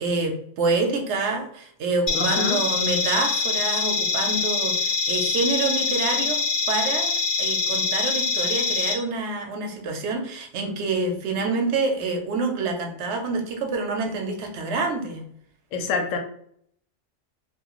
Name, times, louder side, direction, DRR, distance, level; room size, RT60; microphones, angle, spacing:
voice 1, 0.0-6.4 6.7-7.1 7.4-15.2, right 3 dB, 70° right, 3 dB, 0.9 m, -27 dB
voice 2, 2.1-2.6 15.7-16.2, left 4 dB, 80° left, 4 dB, 0.9 m, -26 dB
sound 1, 2.1-8.9, left 4 dB, 45° left, 0.4 m, -24 dB
2.4 x 2.3 x 2.9 m, 0.66 s
omnidirectional pair, 1.3 m